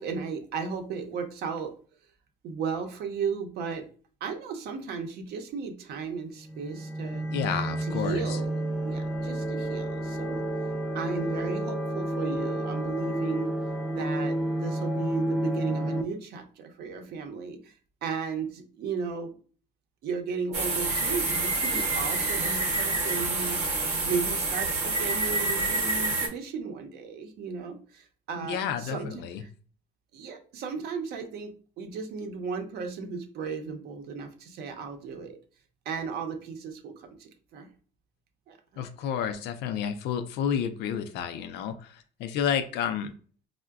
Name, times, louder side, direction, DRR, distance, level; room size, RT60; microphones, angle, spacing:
voice 1, 0.0-1.7 2.4-3.9 4.2-7.3 7.8-10.5 10.9-13.5 13.9-17.7 18.0-19.3 20.0-23.6 24.0-29.5 30.1-35.4 35.9-37.7 38.5-38.8, right 5 dB, 70° right, 5 dB, 0.6 m, -35 dB
sound 1, 6.4-16.0, right 1 dB, ahead, 0.4 m, -30 dB
voice 2, 7.3-8.4 28.4-29.4 38.8-41.9 42.2-43.1, left 8 dB, 80° left, 9 dB, 0.4 m, -30 dB
sound 2, 20.5-26.3, right 3 dB, 40° right, 0.8 m, -27 dB
4.5 x 2.1 x 2.3 m, 0.42 s
cardioid pair, 110°, 17 cm